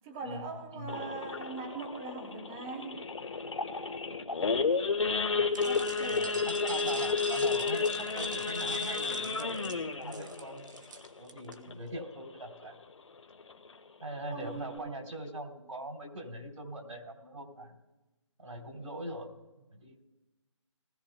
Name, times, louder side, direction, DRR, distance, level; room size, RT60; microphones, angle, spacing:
voice 1, 0.0-3.0 5.6-6.5 14.3-14.9, right 4 dB, 5° right, 2 dB, 0.5 m, -41 dB
Idling / Accelerating revving vroom / Sawing, 0.9-12.0 12.4-12.6 12.8-12.9 13.4-13.7 14.1-14.2 14.4-14.8, left 4 dB, 65° left, 1.3 m, -32 dB
sound 1, 5.5-11.6, right 4 dB, 35° right, 1.0 m, -45 dB
voice 2, 6.0-10.9 11.2-12.8 14.0-17.8 18.4-19.3 19.7-20.0, right 1 dB, 85° right, 1 dB, 3.6 m, -42 dB
19.5 x 15.0 x 2.3 m, 1.1 s
figure-of-eight pair, 170°, 17 cm